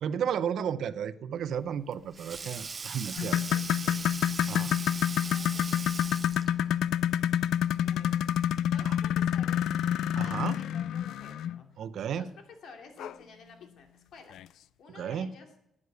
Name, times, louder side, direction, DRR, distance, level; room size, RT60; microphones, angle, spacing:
voice 1, 0.0-3.4 4.5-4.8 8.8-9.0 10.2-10.6 11.8-12.3 14.9-15.3, right 8 dB, 65° right, 14 dB, 0.7 m, -33 dB
Sink (filling or washing), 1.5-6.7, right 4 dB, 25° right, 0.6 m, -40 dB
voice 2, 3.0-4.0 4.8-6.1 7.7-8.2 8.7-9.7 10.1-11.8 12.2-14.4 14.8-15.5, left 4 dB, 70° left, 4 dB, 2.5 m, -53 dB
sound 1, 3.2-11.6 13.0-13.1 13.6-13.7 14.3-14.4, left 10 dB, 90° left, 0.4 m, -28 dB
sound 2, 12.6-14.9, left 5 dB, 15° left, 1.5 m, -58 dB
10.5 x 9.8 x 8.1 m, 0.81 s
cardioid pair, 155°, 0 cm